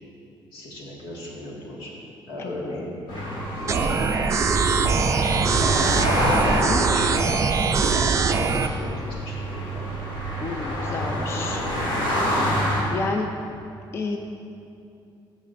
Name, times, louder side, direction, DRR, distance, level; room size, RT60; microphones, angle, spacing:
voice 1, 0.5-1.9 2.3-2.9 3.6-4.1 4.3-6.0 6.6-9.9 11.0-12.0, left 1 dB, 80° left, -4 dB, 1.8 m, -38 dB
voice 2, 2.4-2.8 6.7-6.8 10.4-11.6 12.9-13.3 13.9-14.2, left 3 dB, 30° left, 3 dB, 0.4 m, -30 dB
sound 1, 3.1-12.8, equal, 55° left, 2.0 m, -27 dB
sound 2, 3.7-8.7, right 5 dB, 35° right, 0.4 m, -22 dB
14.0 x 6.1 x 2.5 m, 2.6 s
cardioid pair, 140°, 9 cm